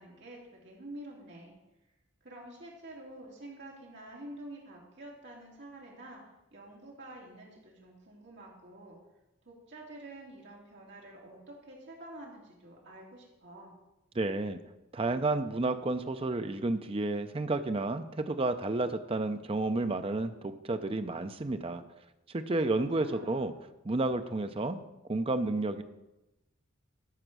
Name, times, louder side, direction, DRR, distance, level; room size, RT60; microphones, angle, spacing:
voice 1, 0.0-1.5 2.2-6.2 6.5-9.0 9.4-13.8 22.7-23.6, right 1 dB, 55° right, -3 dB, 2.8 m, -48 dB
voice 2, 14.1-14.6 14.9-21.8 22.3-23.5 23.8-24.8 25.1-25.8, right 2 dB, 25° right, 9 dB, 0.5 m, -31 dB
13.0 x 4.4 x 6.1 m, 0.97 s
head